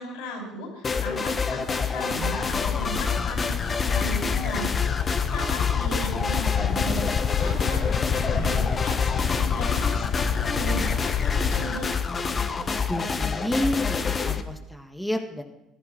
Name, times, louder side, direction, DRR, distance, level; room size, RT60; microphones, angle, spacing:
voice 1, 0.0-4.7 5.0-11.9, equal, 85° left, 1 dB, 6.5 m, -36 dB
sound 1, 0.8-14.4, left 5 dB, 35° left, 1.2 m, -27 dB
sound 2, 2.4-11.7, left 7 dB, 60° left, 1.1 m, -28 dB
voice 2, 12.9-14.0 14.2-15.4, equal, 5° left, 3 dB, 1.6 m, -29 dB
15.5 x 11.0 x 5.8 m, 0.88 s
supercardioid pair, 80°, 0 cm